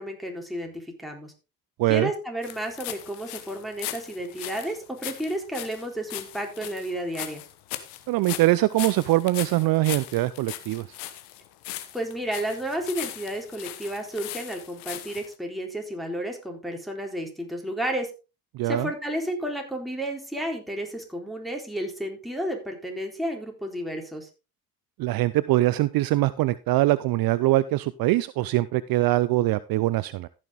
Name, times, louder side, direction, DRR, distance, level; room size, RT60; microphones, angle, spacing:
voice 1, 0.0-1.3 1.9-7.4 11.9-18.1 18.6-24.3, right 1 dB, ahead, 1 dB, 4.0 m, -32 dB
voice 2, 1.8-2.1 8.1-10.9 18.5-18.9 25.0-30.3, right 17 dB, 55° right, 17 dB, 0.6 m, -23 dB
sound 1, 2.4-15.3, left 14 dB, 70° left, 1.4 m, -38 dB
14.5 x 6.4 x 3.7 m, 0.29 s
hypercardioid pair, 55°, 41 cm